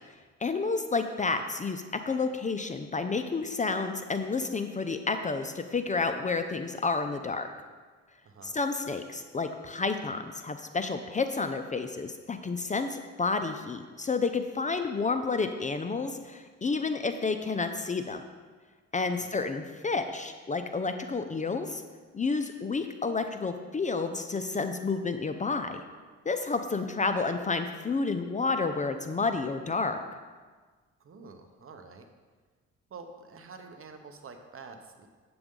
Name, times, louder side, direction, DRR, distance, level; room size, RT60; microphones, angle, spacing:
voice 1, 0.4-7.5 8.4-18.2 18.9-21.8 22.1-25.8 26.3-30.0, left 4 dB, 25° left, 8 dB, 0.5 m, -30 dB
voice 2, 8.2-8.6 19.1-19.3 31.0-32.1 32.9-35.1, right 4 dB, 45° right, 6 dB, 0.9 m, -48 dB
7.9 x 7.8 x 3.7 m, 1.4 s
cardioid pair, 90°, 30 cm